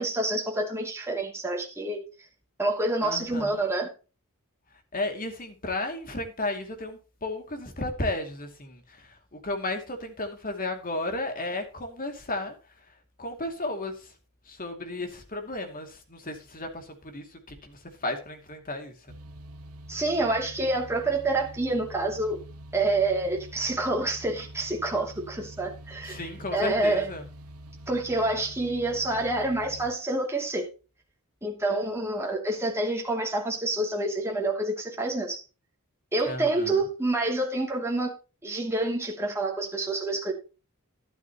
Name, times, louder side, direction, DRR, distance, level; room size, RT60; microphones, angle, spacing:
voice 1, 0.0-2.0 2.6-3.9 19.9-22.4 22.7-27.1 27.9-30.6 31.4-35.4 36.1-38.1 38.4-40.3, right 2 dB, 10° right, 2.7 m, -27 dB
voice 2, 3.0-3.6 4.9-12.5 13.2-14.1 14.5-18.9 26.0-27.2 36.3-36.8, left 2 dB, 40° left, 2.5 m, -34 dB
sound 1, 19.1-29.9, right 1 dB, 75° right, 1.4 m, -45 dB
12.0 x 12.0 x 3.0 m
head